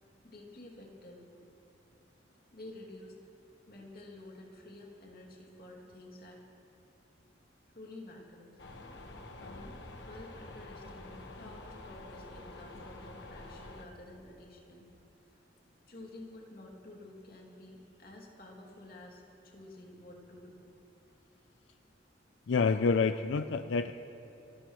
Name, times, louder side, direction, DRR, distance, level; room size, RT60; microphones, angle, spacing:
voice 1, 0.2-1.3 2.5-3.2 3.7-6.4 7.7-8.6 9.4-14.9 15.2-15.4 15.9-20.6, left 2 dB, 55° left, -1 dB, 2.6 m, -50 dB
sound 1, 8.6-13.9, left 2 dB, 70° left, 1.4 m, -47 dB
voice 2, 22.5-23.9, left 4 dB, 85° left, 10 dB, 0.4 m, -28 dB
30.0 x 13.0 x 3.2 m, 2.9 s
head